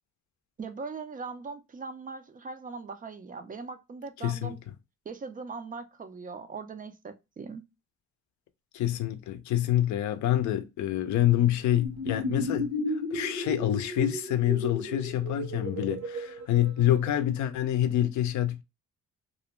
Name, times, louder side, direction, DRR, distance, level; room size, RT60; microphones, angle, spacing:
voice 1, 0.6-4.6 5.1-7.6, right 4 dB, 30° right, 0.4 m, -40 dB
voice 2, 4.2-4.5 8.7-18.6, left 12 dB, 70° left, 0.5 m, -27 dB
sound 1, 11.8-17.2, left 1 dB, 60° right, 1.0 m, -34 dB
2.4 x 2.0 x 3.0 m
cardioid pair, 90°, 30 cm